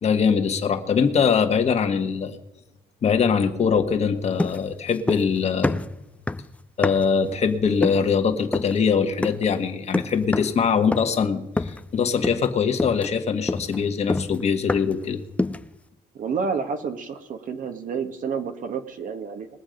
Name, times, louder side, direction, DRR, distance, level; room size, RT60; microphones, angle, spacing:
voice 1, 0.0-2.4 3.0-5.8 6.8-15.2, left 6 dB, 40° left, 6 dB, 1.4 m, -22 dB
sound 1, 4.4-5.4 5.6-7.2 7.8-8.1 8.5-8.8 9.2-9.5 9.9-10.6 10.9-11.2 11.6-11.9 12.2-12.5 12.8-15.0 15.4-15.7, left 2 dB, 10° left, 0.4 m, -27 dB
voice 2, 16.1-19.5, right 5 dB, 50° right, 7 dB, 1.3 m, -29 dB
21.0 x 7.1 x 5.2 m, 0.97 s
cardioid pair, 110°, 17 cm